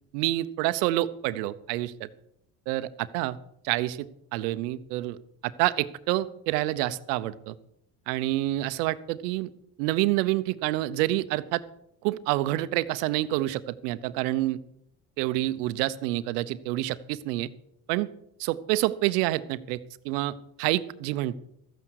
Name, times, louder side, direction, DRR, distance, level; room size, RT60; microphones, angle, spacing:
voice 1, 0.1-2.1 2.7-3.4 3.6-5.2 5.4-7.6 8.1-9.5 9.8-11.6 12.0-14.6 15.2-17.5 17.9-18.1 18.4-21.3, right 16 dB, 85° right, 15 dB, 0.8 m, -28 dB
13.5 x 9.1 x 6.3 m, 0.77 s
supercardioid pair, 75°, 47 cm